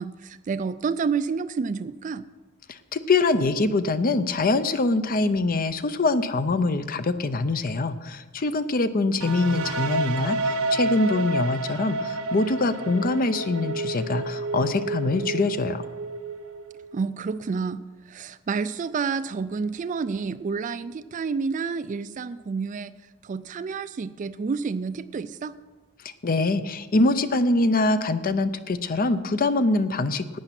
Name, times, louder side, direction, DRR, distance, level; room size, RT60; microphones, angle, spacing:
voice 1, 0.0-2.3 16.9-17.8 18.1-22.9 23.2-25.6, right 5 dB, 35° right, 13 dB, 0.3 m, -29 dB
voice 2, 2.7-15.9 26.0-30.4, left 2 dB, 40° left, 12 dB, 0.6 m, -24 dB
sound 1, 9.2-16.9, right 2 dB, 85° right, 1.1 m, -30 dB
11.5 x 9.0 x 5.9 m, 1.2 s
head